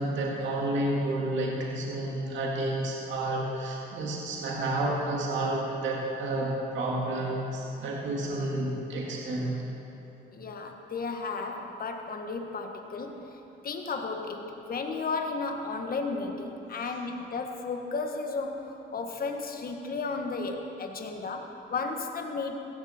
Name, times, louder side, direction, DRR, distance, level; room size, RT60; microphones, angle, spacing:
voice 1, 0.0-9.5, right 1 dB, 70° right, -3 dB, 2.1 m, -30 dB
voice 2, 10.3-13.3 13.6-22.5, left 4 dB, 50° left, 3 dB, 1.4 m, -34 dB
15.5 x 13.5 x 4.3 m, 3.0 s
cardioid pair, 90°, 20 cm